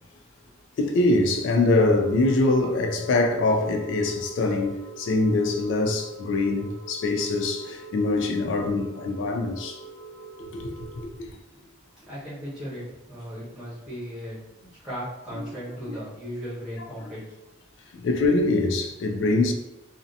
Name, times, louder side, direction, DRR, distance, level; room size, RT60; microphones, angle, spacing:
voice 1, 0.8-9.8 10.4-10.7 15.4-15.5 15.9-16.0 17.9-19.5, left 2 dB, 90° left, 0.3 m, -23 dB
sound 1, 2.0-11.0, right 4 dB, 25° right, 0.7 m, -44 dB
voice 2, 12.0-17.4, equal, 5° right, 1.0 m, -37 dB
2.6 x 2.1 x 2.5 m
head